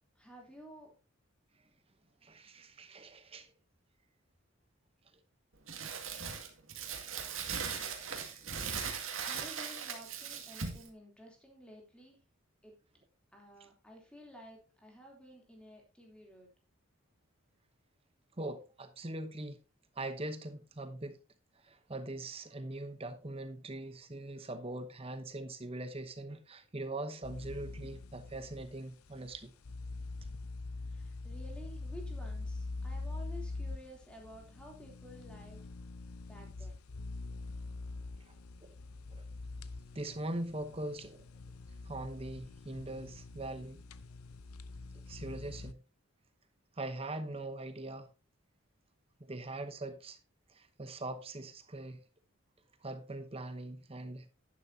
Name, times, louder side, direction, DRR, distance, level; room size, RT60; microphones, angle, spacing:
voice 1, 0.1-0.9 9.2-12.2 12.6-12.8 13.3-16.5 30.8-35.7 36.3-36.8, equal, 5° left, 3.1 m, -53 dB
voice 2, 2.2-3.5 18.4-19.6 20.0-21.2 21.5-29.5 38.2-38.3 38.6-38.8 39.1-39.3 39.9-41.3 41.8-43.8 44.9-45.8 46.8-48.1 49.2-50.2 50.5-52.0 52.8-54.3, right 2 dB, 25° right, 0.9 m, -42 dB
Crumpling crinkling, 5.7-10.9, right 6 dB, 70° right, 2.1 m, -39 dB
sound 1, 27.2-45.7, left 3 dB, 90° left, 0.7 m, -44 dB
11.0 x 10.0 x 2.8 m
head